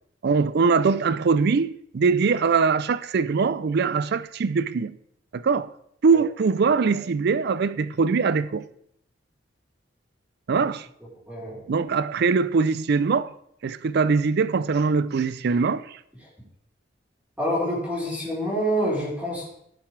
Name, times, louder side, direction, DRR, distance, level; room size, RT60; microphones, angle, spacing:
voice 1, 0.2-4.9 5.3-5.7 6.0-8.7 10.5-10.9 11.7-13.3 13.6-16.0, right 5 dB, 60° right, 0.4 m, -22 dB
voice 2, 11.3-11.6 17.4-19.5, equal, 10° right, 3.8 m, -26 dB
16.0 x 6.7 x 3.3 m
head